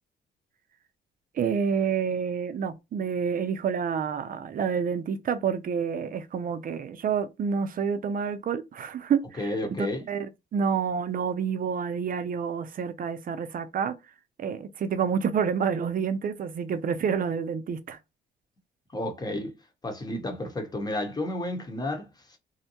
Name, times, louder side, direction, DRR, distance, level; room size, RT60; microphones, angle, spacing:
voice 1, 1.4-9.5 9.8-10.3 10.5-14.0 14.4-18.0, right 6 dB, 45° right, 0.5 m, -28 dB
voice 2, 9.4-10.1 18.9-19.6 19.8-22.4, left 1 dB, 20° left, 1.0 m, -32 dB
2.7 x 2.1 x 2.8 m
cardioid pair, 90°, 20 cm